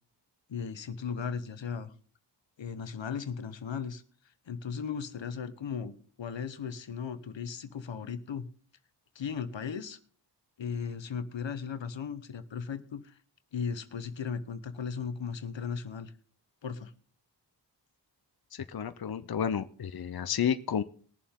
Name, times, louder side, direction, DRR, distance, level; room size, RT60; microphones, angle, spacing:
voice 1, 0.5-1.9 2.6-4.0 4.5-8.5 9.1-10.0 10.6-13.1 13.5-16.1 16.6-16.9, left 6 dB, 85° left, 12 dB, 1.0 m, -36 dB
voice 2, 18.5-20.8, left 8 dB, 55° left, 11 dB, 0.7 m, -31 dB
20.5 x 7.2 x 3.7 m, 0.43 s
wide cardioid pair, 95°, 44 cm